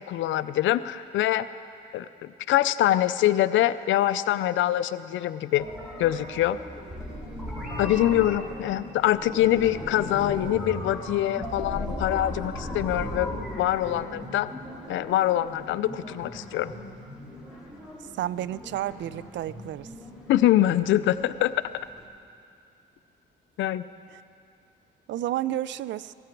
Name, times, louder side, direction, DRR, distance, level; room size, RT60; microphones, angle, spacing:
voice 1, 0.1-1.5 1.9-2.1 2.5-5.7 6.0-6.6 7.8-14.5 14.9-16.7 20.3-21.5 23.6-23.8, left 13 dB, 75° left, 13 dB, 0.5 m, -24 dB
sound 1, 5.6-22.0, left 1 dB, 5° right, 4.0 m, -38 dB
voice 2, 18.1-19.9 24.1-24.2 25.1-26.1, right 13 dB, 70° right, 17 dB, 0.4 m, -31 dB
17.5 x 14.5 x 4.5 m, 2.4 s
cardioid pair, 90°, 20 cm